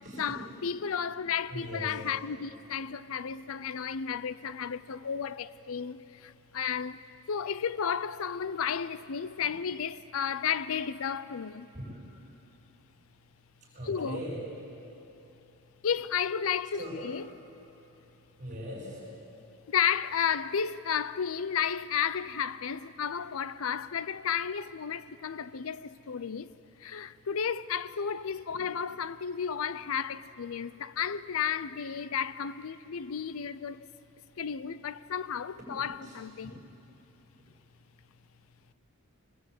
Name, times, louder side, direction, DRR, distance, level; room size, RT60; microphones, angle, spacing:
voice 1, 0.2-11.7 13.9-14.2 15.8-17.2 19.7-26.5 26.8-33.9 34.4-36.5, left 7 dB, 75° left, 0.5 m, -33 dB
voice 2, 1.5-2.0 11.7-12.0 13.7-14.4 16.7-17.0 18.4-19.0 36.0-36.2, equal, 35° right, 7.0 m, -39 dB
23.0 x 20.5 x 8.4 m
head